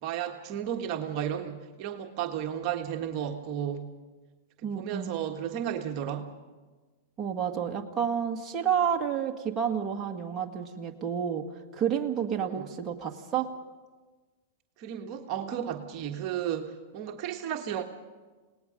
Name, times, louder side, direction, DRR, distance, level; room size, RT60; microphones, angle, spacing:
voice 1, 0.0-3.9 4.6-6.3 12.4-12.7 14.8-17.8, right 9 dB, 45° right, 3 dB, 1.6 m, -33 dB
voice 2, 4.6-5.2 7.2-11.5 11.7-13.5, right 8 dB, 20° right, 1 dB, 1.9 m, -30 dB
28.0 x 19.0 x 5.3 m, 1.3 s
hypercardioid pair, 125°, 0 cm